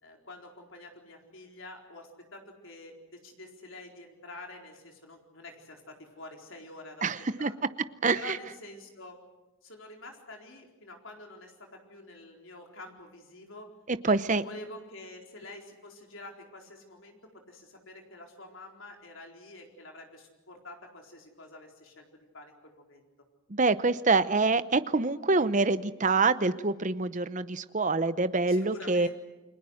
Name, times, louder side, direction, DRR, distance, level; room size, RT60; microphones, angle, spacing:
voice 1, 0.0-7.0 7.4-7.5 8.1-9.2 9.6-13.7 14.1-23.0 28.5-29.2, left 2 dB, 65° left, 2 dB, 4.3 m, -47 dB
voice 2, 7.0-7.5 8.0-8.4 13.9-14.4 23.5-29.1, right 3 dB, 35° right, 13 dB, 0.7 m, -26 dB
29.5 x 22.5 x 6.5 m, 1.1 s
head